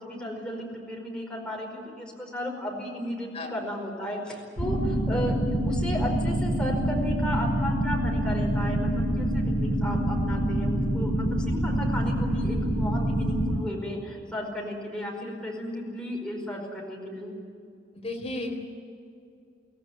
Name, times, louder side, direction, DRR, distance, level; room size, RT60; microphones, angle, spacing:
voice 1, 0.0-17.3, equal, 5° left, -1 dB, 4.9 m, -34 dB
sound 1, 4.6-13.6, right 1 dB, 85° left, 3.6 m, -26 dB
voice 2, 18.0-18.6, left 2 dB, 35° left, 1 dB, 4.0 m, -33 dB
24.5 x 16.5 x 9.6 m, 2.4 s
head